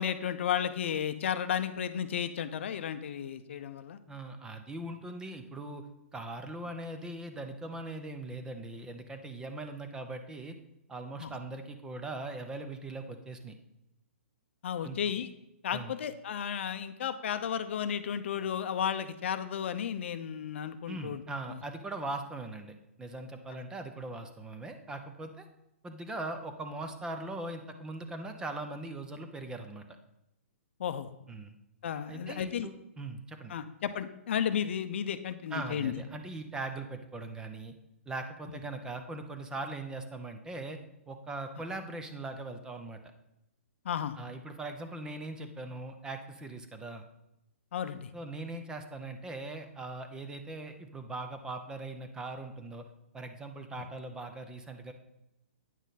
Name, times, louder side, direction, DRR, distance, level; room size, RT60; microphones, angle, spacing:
voice 1, 0.0-4.0 11.2-11.3 14.6-15.3 15.6-21.2 21.5-21.6 30.8-31.1 31.8-32.7 33.5-36.0 38.5-38.6 43.8-44.2 47.7-48.1, left 8 dB, 60° left, 11 dB, 0.6 m, -33 dB
voice 2, 4.1-5.8 6.1-10.5 10.9-13.6 14.8-15.0 15.7-15.9 20.9-25.4 25.8-29.8 31.3-31.6 32.1-33.5 35.5-37.7 38.1-40.8 41.1-43.0 44.2-47.0 48.1-52.8 53.1-54.9, right 2 dB, 10° right, 7 dB, 0.6 m, -40 dB
9.1 x 6.2 x 4.1 m, 0.87 s
hypercardioid pair, 140°, 7 cm